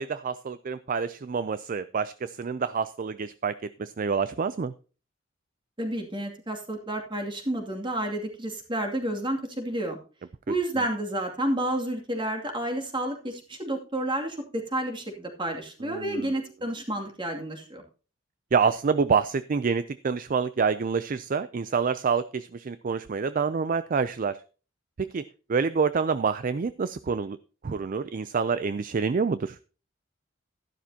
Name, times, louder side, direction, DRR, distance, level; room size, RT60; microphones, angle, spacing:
voice 1, 0.0-4.7 15.8-16.3 18.5-24.4 25.0-27.4 27.6-29.6, right 5 dB, 45° right, 14 dB, 0.4 m, -27 dB
voice 2, 5.8-10.0 10.5-17.8, right 1 dB, 25° right, 2 dB, 2.4 m, -30 dB
12.5 x 11.5 x 2.8 m, 0.36 s
head